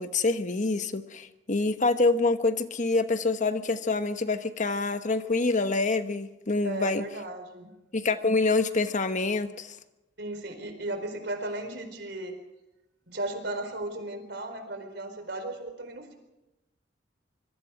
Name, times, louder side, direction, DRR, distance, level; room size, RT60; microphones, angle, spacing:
voice 1, 0.0-7.0 7.9-9.7, left 3 dB, 45° left, 10 dB, 1.1 m, -26 dB
voice 2, 6.6-7.7 10.2-12.4 13.1-16.1, right 1 dB, 70° right, 6 dB, 4.6 m, -35 dB
25.5 x 22.5 x 5.0 m, 0.97 s
head